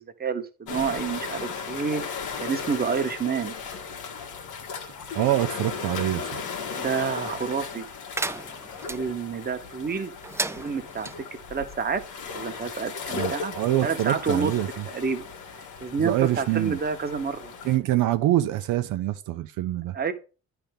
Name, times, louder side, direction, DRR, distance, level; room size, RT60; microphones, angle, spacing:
voice 1, 0.0-2.0 2.4-3.6 6.7-7.8 8.9-10.1 10.5-12.0 12.3-13.6 13.8-14.5 14.9-15.2 15.8-17.5 19.9-20.1, right 5 dB, 30° right, 1.0 m, -29 dB
sound 1, 0.7-17.8, left 5 dB, 85° left, 1.5 m, -36 dB
voice 2, 5.1-6.4 13.1-14.8 16.0-16.8 17.6-20.0, right 14 dB, 90° right, 0.6 m, -25 dB
sound 2, 8.1-9.0 10.2-11.1, right 2 dB, 10° right, 0.3 m, -32 dB
10.0 x 3.5 x 5.2 m
cardioid pair, 90°, 30 cm